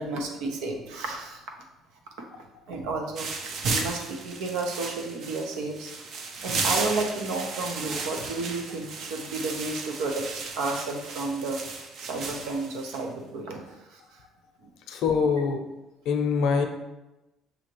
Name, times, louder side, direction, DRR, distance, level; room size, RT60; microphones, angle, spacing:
voice 1, 0.0-1.4 2.7-3.3 3.7-5.9 6.4-11.6 12.0-13.6 13.9-14.0, right 3 dB, 90° right, 3 dB, 0.8 m, -32 dB
sound 1, 3.2-13.0, right 4 dB, 45° right, 0.5 m, -34 dB
voice 2, 14.9-15.6 16.1-16.6, left 5 dB, 65° left, 5 dB, 0.6 m, -24 dB
6.3 x 2.8 x 3.0 m, 0.99 s
cardioid pair, 165°, 0 cm